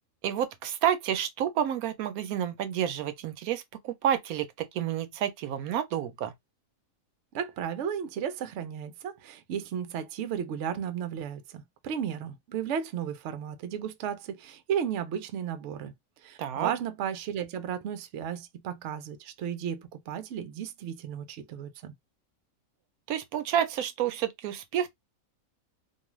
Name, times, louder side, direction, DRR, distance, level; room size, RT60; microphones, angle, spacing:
voice 1, 0.2-6.3 16.4-16.7 23.1-24.9, right 10 dB, 85° right, 1.0 m, -29 dB
voice 2, 7.3-21.9, right 8 dB, 65° right, 0.8 m, -34 dB
2.6 x 2.3 x 3.0 m
omnidirectional pair, 1.5 m